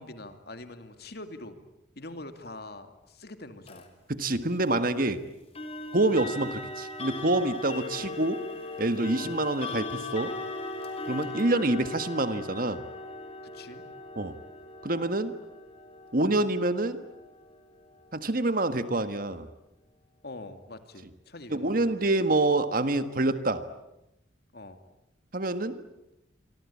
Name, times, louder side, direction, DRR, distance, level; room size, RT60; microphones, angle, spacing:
voice 1, 0.0-1.7 2.0-3.9 9.1-9.4 13.4-13.8 20.2-21.8 24.5-24.8, left 2 dB, 55° left, 8 dB, 2.5 m, -44 dB
sound 1, 3.7-3.9 5.6-18.4, left 2 dB, 30° left, 3.6 m, -39 dB
voice 2, 4.1-5.2 5.9-8.4 8.8-10.4 11.1-12.8 14.2-14.4 14.8-15.3 16.1-17.0 18.1-19.5 21.5-23.7 25.3-25.8, right 2 dB, 50° right, 11 dB, 1.6 m, -27 dB
28.5 x 24.5 x 8.5 m, 0.89 s
head